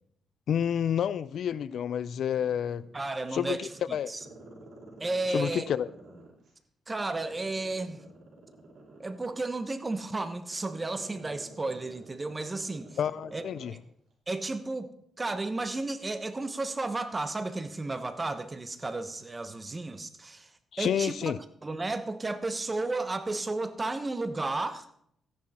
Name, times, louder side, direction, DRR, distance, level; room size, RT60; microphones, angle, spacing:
voice 1, 0.5-2.8 3.3-4.1 5.3-5.9 13.0-13.7 20.7-21.4, left 9 dB, 65° left, 0.4 m, -29 dB
Growling, 1.4-3.1 3.5-6.5 7.0-13.8 14.1-14.2, right 2 dB, 60° right, 4.8 m, -51 dB
voice 2, 2.9-4.2 5.0-5.7 6.9-8.0 9.0-13.0 13.3-13.4 14.3-20.5 20.8-21.3 21.6-24.9, right 2 dB, 20° right, 1.0 m, -33 dB
13.5 x 10.5 x 4.3 m
cardioid pair, 115°, 0 cm